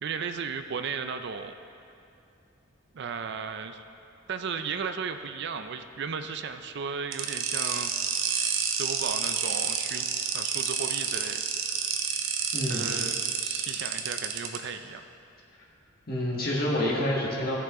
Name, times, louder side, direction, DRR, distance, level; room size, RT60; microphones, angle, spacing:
voice 1, 0.0-1.5 2.9-3.8 4.3-7.9 8.8-10.1 10.3-11.4 12.7-15.0, right 6 dB, 60° right, 8 dB, 0.4 m, -35 dB
sound 1, 7.1-14.6, right 7 dB, 85° right, 0.8 m, -29 dB
voice 2, 12.5-12.9 16.1-17.5, left 1 dB, 50° left, -5 dB, 1.5 m, -28 dB
16.5 x 5.9 x 3.7 m, 2.7 s
head